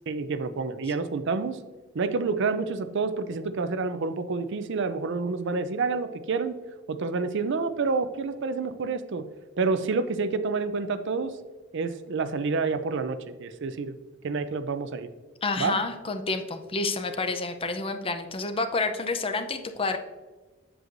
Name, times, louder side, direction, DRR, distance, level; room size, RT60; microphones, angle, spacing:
voice 1, 0.1-1.6 1.9-6.6 6.9-9.3 9.6-11.3 11.7-13.9 14.2-15.1 15.6-15.8, right 4 dB, 60° right, 11 dB, 0.5 m, -28 dB
voice 2, 15.4-20.0, left 3 dB, 30° left, 7 dB, 0.6 m, -29 dB
7.8 x 7.7 x 2.6 m, 1.3 s
head